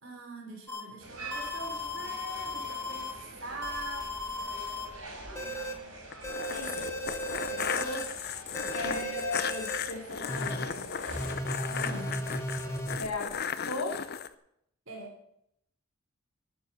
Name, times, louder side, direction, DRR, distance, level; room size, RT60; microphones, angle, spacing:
voice 1, 0.0-3.1 3.4-4.1 5.4-5.9 6.5-6.9 8.8-9.1 11.6-12.1 14.9-15.2, right 2 dB, 60° right, 2 dB, 3.3 m, -43 dB
sound 1, 0.7-0.8 1.3-3.1 3.6-4.9 5.4-5.7 6.2-8.0 8.5-9.8 10.3-10.7 11.2-13.0, left 1 dB, 10° left, 1.1 m, -36 dB
sound 2, 1.0-12.8, right 1 dB, 80° right, 3.9 m, -45 dB
sound 3, 6.1-14.3, left 7 dB, 45° left, 0.6 m, -35 dB
voice 2, 7.5-8.1 8.7-10.9 13.0-13.4 13.7-14.1, left 3 dB, 80° left, 2 dB, 1.4 m, -37 dB
12.0 x 7.5 x 6.8 m, 0.75 s
head